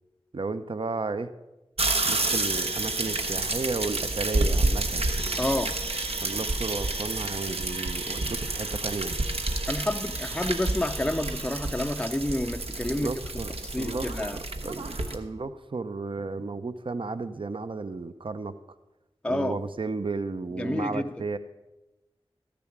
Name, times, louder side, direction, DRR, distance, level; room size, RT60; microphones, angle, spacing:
voice 1, 0.3-1.3 2.0-5.1 6.2-9.1 12.9-18.5 19.3-21.4, right 3 dB, 55° right, 0.6 m, -33 dB
sound 1, 1.8-15.2, right 2 dB, 75° right, 1.0 m, -29 dB
voice 2, 5.4-5.8 9.7-13.1 13.6-14.4 19.2-19.6 20.6-21.0, left 1 dB, 10° left, 0.4 m, -29 dB
13.0 x 6.9 x 6.0 m
wide cardioid pair, 45°, 10 cm